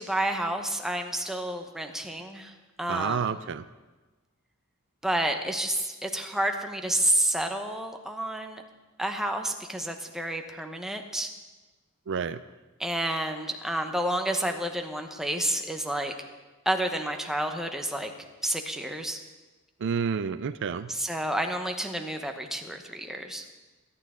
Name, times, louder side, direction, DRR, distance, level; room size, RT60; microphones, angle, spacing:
voice 1, 0.0-2.5 2.8-3.2 5.0-8.6 9.0-11.3 12.8-16.1 16.7-18.1 18.4-19.2 20.9-23.4, right 1 dB, ahead, 4 dB, 0.9 m, -30 dB
voice 2, 2.9-3.6 12.1-12.4 19.8-20.9, right 6 dB, 55° right, 13 dB, 0.4 m, -29 dB
23.5 x 9.5 x 3.7 m, 1.2 s
head